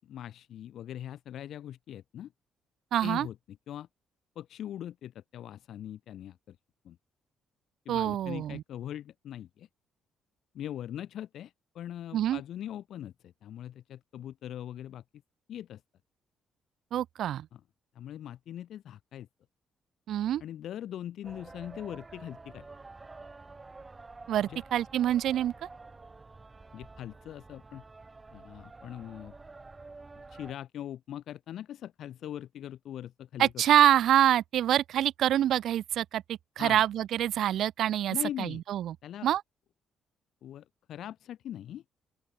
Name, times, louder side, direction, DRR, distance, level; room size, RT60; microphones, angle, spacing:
voice 1, 0.0-2.3 3.0-3.4 3.7-3.9 4.3-6.6 6.8-7.0 7.8-9.7 10.5-15.0 15.5-15.8 17.5-17.6 17.9-19.3 20.4-22.7 24.5-24.6 26.7-27.8 28.3-29.3 30.3-33.5 36.6-36.8 38.1-38.6 39.0-39.3 40.4-41.8, left 11 dB, 70° left, 6.3 m, -41 dB
voice 2, 2.9-3.3 7.9-8.6 12.1-12.4 16.9-17.5 20.1-20.4 24.3-25.5 33.4-39.0 39.2-39.4, right 11 dB, 75° right, 0.4 m, -26 dB
sound 1, 21.2-30.5, right 3 dB, 25° right, 4.3 m, -49 dB
open air
cardioid pair, 90°, 0 cm